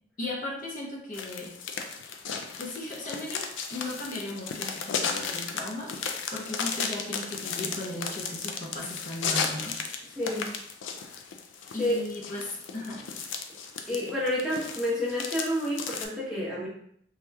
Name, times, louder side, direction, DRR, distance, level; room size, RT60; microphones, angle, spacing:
voice 1, 0.2-1.5 2.6-9.8 11.7-13.0, left 1 dB, 45° left, -2 dB, 0.7 m, -37 dB
sound 1, 1.1-16.1, left 6 dB, 80° left, 0.4 m, -35 dB
voice 2, 10.1-10.5 11.8-12.1 13.9-16.7, left 1 dB, ahead, -7 dB, 0.8 m, -29 dB
2.8 x 2.4 x 3.2 m, 0.67 s
head